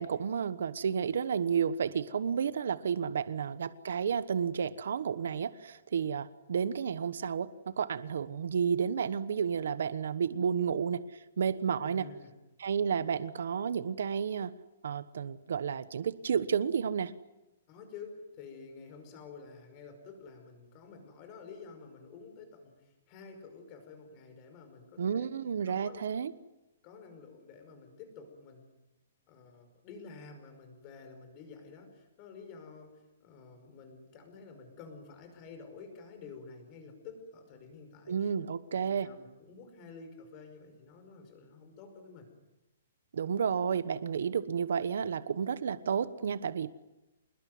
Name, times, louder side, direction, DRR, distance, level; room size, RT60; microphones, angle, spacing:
voice 1, 0.0-12.1 12.6-14.5 14.8-17.1 25.0-26.3 38.1-39.1 43.1-46.7, right 7 dB, 65° right, 14 dB, 1.1 m, -31 dB
voice 2, 11.8-12.3 17.7-25.3 25.6-26.0 26.8-28.7 29.3-38.3 38.7-42.3, left 5 dB, 25° left, 7 dB, 5.2 m, -50 dB
27.0 x 21.5 x 9.4 m, 0.98 s
hypercardioid pair, 175°, 0 cm